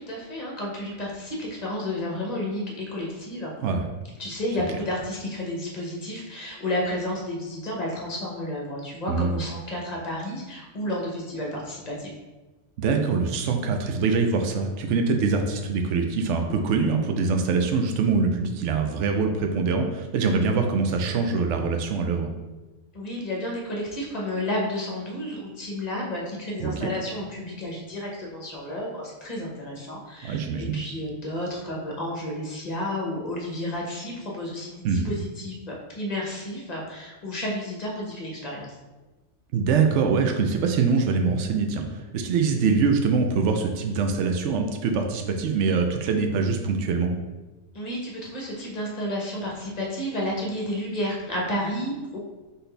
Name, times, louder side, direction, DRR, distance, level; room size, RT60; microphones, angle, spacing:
voice 1, 0.0-3.5 4.2-12.1 22.9-38.7 47.7-52.2, left 1 dB, 35° left, -3 dB, 1.0 m, -31 dB
voice 2, 9.1-9.4 12.8-22.3 26.6-26.9 30.2-30.8 34.8-35.1 39.5-47.1, right 4 dB, 75° right, 4 dB, 0.9 m, -24 dB
4.1 x 3.8 x 3.3 m, 1.1 s
omnidirectional pair, 1.3 m